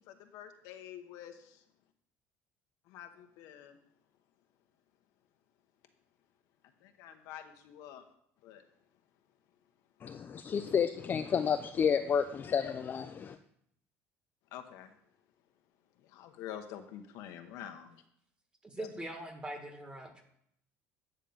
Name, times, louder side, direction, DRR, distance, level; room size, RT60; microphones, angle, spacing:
voice 1, 0.1-1.6 2.9-3.8 6.8-8.0 8.4-8.6 14.5-14.9 16.0-17.9 18.8-18.9, left 10 dB, 75° left, 0.9 m, -47 dB
voice 2, 10.0-13.4, left 7 dB, 35° left, 0.4 m, -31 dB
voice 3, 18.6-20.2, right 1 dB, 15° right, 1.6 m, -42 dB
8.9 x 3.7 x 7.0 m
cardioid pair, 115°, 6 cm